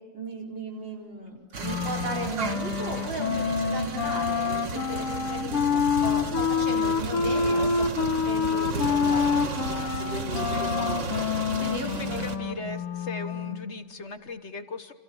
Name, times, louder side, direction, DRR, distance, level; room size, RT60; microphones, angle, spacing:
voice 1, 0.1-12.3, right 2 dB, 55° right, -1 dB, 5.2 m, -36 dB
sound 1, 1.5-12.4, right 3 dB, 35° right, 1.6 m, -34 dB
Wind instrument woodwind instrument, 1.6-13.7, left 5 dB, 75° left, 2.5 m, -27 dB
voice 2, 4.9-5.5 10.3-10.7 12.0-14.9, left 3 dB, 40° left, 9 dB, 1.2 m, -39 dB
29.0 x 27.5 x 7.1 m, 1.3 s
omnidirectional pair, 2.4 m